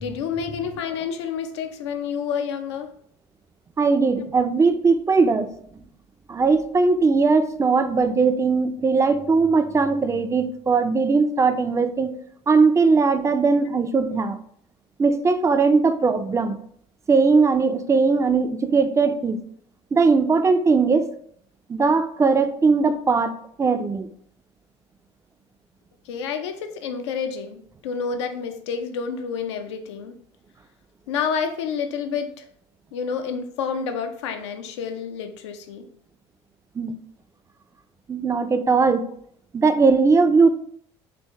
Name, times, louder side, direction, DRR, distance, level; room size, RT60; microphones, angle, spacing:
voice 1, 0.0-2.9 26.1-30.2 31.1-32.4 32.9-35.9 38.7-38.8, left 6 dB, 80° left, 0.5 m, -29 dB
voice 2, 3.8-5.5 6.3-12.1 12.5-14.4 15.0-16.6 17.1-19.4 19.9-21.1 21.7-24.1 36.8-37.0 38.1-39.1 39.5-40.5, right 4 dB, 20° right, 0.4 m, -19 dB
4.5 x 2.5 x 3.5 m
hypercardioid pair, 65°, 14 cm